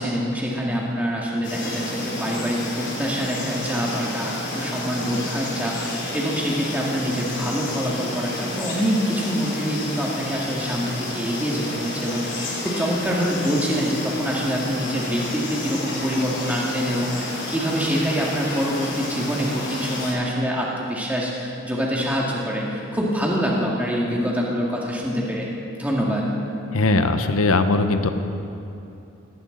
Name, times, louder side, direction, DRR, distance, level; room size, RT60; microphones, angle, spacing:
voice 1, 0.0-25.5 25.8-26.3, equal, 5° right, -4 dB, 2.0 m, -25 dB
sound 1, 1.4-20.1, left 1 dB, 50° left, 3.4 m, -31 dB
voice 2, 26.7-28.1, left 2 dB, 75° left, 8 dB, 0.9 m, -19 dB
18.5 x 17.5 x 4.0 m, 2.8 s
head